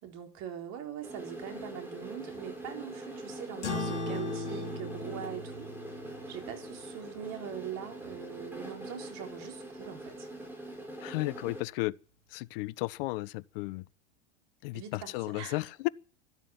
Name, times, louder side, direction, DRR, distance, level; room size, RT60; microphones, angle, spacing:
voice 1, 0.0-5.7 6.3-10.3 14.7-15.6, right 9 dB, 50° right, 4.0 m, -42 dB
sound 1, 1.0-11.6, right 1 dB, 5° right, 6.2 m, -43 dB
sound 2, 3.6-8.5, left 2 dB, 75° left, 4.2 m, -39 dB
voice 2, 11.0-12.0 12.3-13.9 14.6-15.9, left 21 dB, 55° left, 0.7 m, -34 dB
12.5 x 12.5 x 8.9 m
figure-of-eight pair, 85°, 35 cm